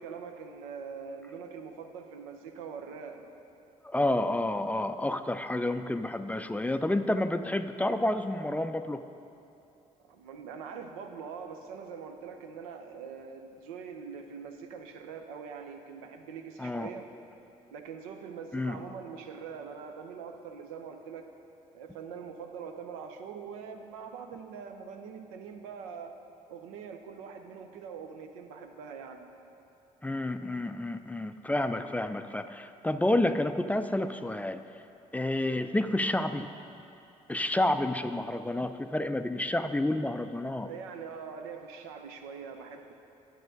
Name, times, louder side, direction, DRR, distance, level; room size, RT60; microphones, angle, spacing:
voice 1, 0.0-3.3 10.0-17.0 17.7-21.3 21.7-26.1 26.5-29.2 40.6-42.9, right 6 dB, 80° right, 5 dB, 0.5 m, -43 dB
voice 2, 3.8-9.0 16.6-16.9 18.5-18.8 30.0-34.6 35.1-36.5 37.3-40.7, left 1 dB, 10° left, 9 dB, 0.3 m, -29 dB
11.5 x 7.8 x 2.6 m, 2.8 s
hypercardioid pair, 45°, 18 cm